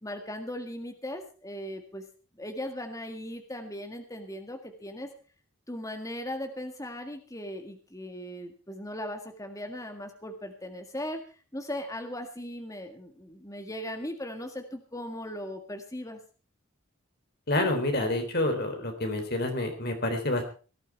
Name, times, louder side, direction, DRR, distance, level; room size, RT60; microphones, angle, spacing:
voice 1, 0.0-2.0 2.4-5.1 5.7-16.2, left 1 dB, 15° left, 5 dB, 1.8 m, -38 dB
voice 2, 17.5-20.4, left 1 dB, 45° left, 5 dB, 3.6 m, -28 dB
18.0 x 11.5 x 4.6 m, 0.37 s
head